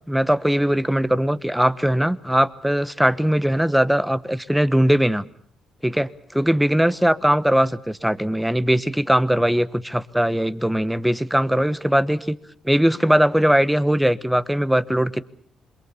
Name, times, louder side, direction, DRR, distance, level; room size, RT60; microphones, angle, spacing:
voice 1, 0.1-5.2 5.8-12.4 12.6-15.2, equal, 5° right, 13 dB, 1.2 m, -20 dB
27.0 x 22.5 x 7.1 m, 0.62 s
cardioid pair, 90°, 0 cm